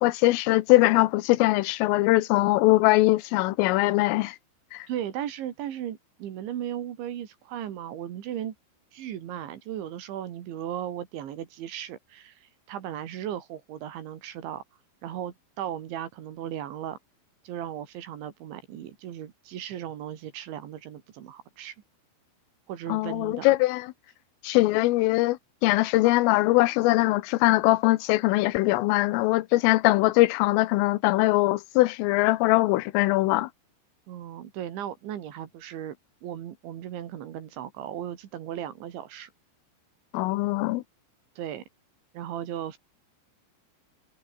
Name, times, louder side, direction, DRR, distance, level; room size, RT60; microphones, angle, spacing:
voice 1, 0.0-4.4 4.7-4.9 22.9-23.9 24.4-33.5 40.1-40.8, left 19 dB, 90° left, 3.5 m, -22 dB
voice 2, 4.9-8.5 8.9-14.6 15.0-17.0 17.5-21.8 22.7-23.5 34.1-36.0 36.2-39.3 41.4-41.6 42.1-42.8, right 10 dB, 70° right, 4.4 m, -36 dB
omnidirectional pair, 5.7 m